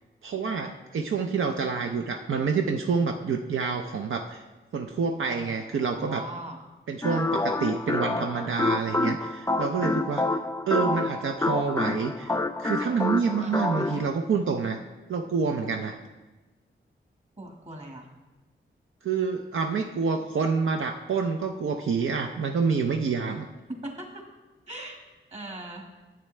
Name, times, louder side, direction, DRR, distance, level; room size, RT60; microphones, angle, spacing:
voice 1, 0.2-4.4 4.7-6.3 6.9-10.4 10.7-14.8 15.1-16.0 19.0-23.5, right 5 dB, 75° right, 4 dB, 0.6 m, -27 dB
voice 2, 5.2-6.6 13.4-14.0 17.4-18.1 23.8-24.2 24.7-25.0 25.3-25.8, right 1 dB, 30° right, 1 dB, 1.7 m, -40 dB
sound 1, 7.0-14.1, left 2 dB, 15° left, 0.4 m, -28 dB
10.5 x 8.3 x 3.2 m, 1.2 s
wide cardioid pair, 75°, 21 cm